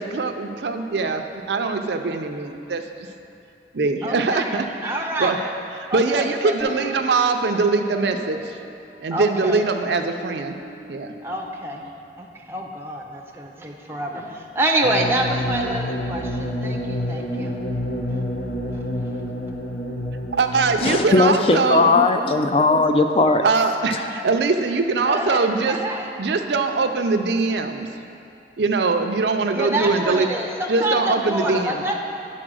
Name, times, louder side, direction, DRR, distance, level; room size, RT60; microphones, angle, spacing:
voice 1, 0.0-3.1 3.7-4.6 5.2-5.5 5.9-8.6 9.0-10.5 10.9-11.1 20.3-21.9 23.4-25.8 26.2-27.9 28.6-30.3 30.7-31.8, right 3 dB, 70° right, 5 dB, 0.5 m, -22 dB
voice 2, 4.0-4.5 4.8-5.3 5.9-6.5 9.1-9.6 11.2-11.8 12.2-17.6 18.1-18.2 18.7-19.2 25.1-26.0 29.5-31.9, right 1 dB, 15° right, 0 dB, 0.6 m, -27 dB
sound 1, 6.6-9.3 9.9-12.4, equal, 10° left, 1.0 m, -41 dB
sound 2, 14.8-21.1, left 1 dB, 70° left, 0.8 m, -28 dB
voice 3, 20.8-23.4 23.9-24.1, left 3 dB, 30° left, 6 dB, 0.4 m, -18 dB
9.9 x 4.2 x 6.2 m, 2.8 s
head